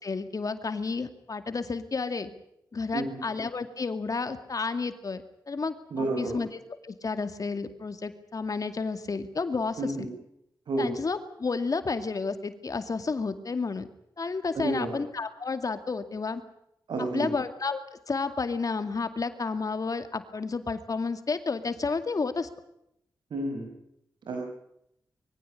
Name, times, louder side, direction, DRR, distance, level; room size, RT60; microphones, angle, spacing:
voice 1, 0.0-2.3 2.7-6.5 6.8-9.9 10.8-13.9 14.2-16.4 17.1-22.5, left 4 dB, 50° left, 10 dB, 2.3 m, -31 dB
voice 2, 5.9-6.3 9.8-10.1 10.7-10.9 14.5-14.9 16.9-17.3 23.3-23.7 24.3-24.4, right 2 dB, 85° right, 1 dB, 5.3 m, -30 dB
23.0 x 16.0 x 9.9 m, 0.77 s
cardioid pair, 65°, 8 cm